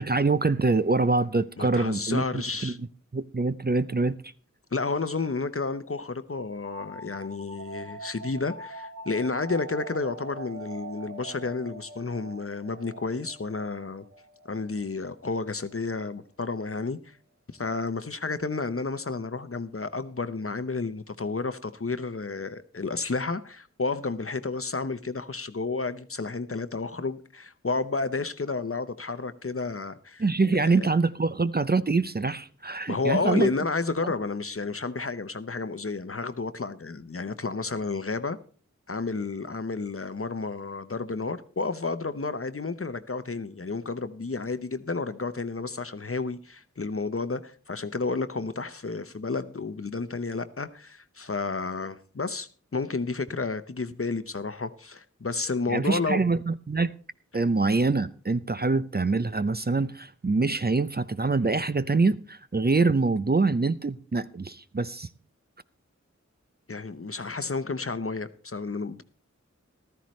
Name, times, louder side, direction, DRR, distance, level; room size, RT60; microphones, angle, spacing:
voice 1, 0.0-2.7 3.1-4.1 30.2-33.5 55.7-56.9 57.3-65.1, right 3 dB, 35° right, 0.5 m, -25 dB
voice 2, 1.6-2.8 4.7-14.0 14.5-17.2 17.5-30.2 30.8-30.9 32.9-38.4 38.9-56.2 66.7-69.0, left 3 dB, 50° left, 0.8 m, -31 dB
sound 1, 6.6-16.0, right 2 dB, 60° right, 1.2 m, -43 dB
14.5 x 13.0 x 3.2 m
wide cardioid pair, 45°, 30 cm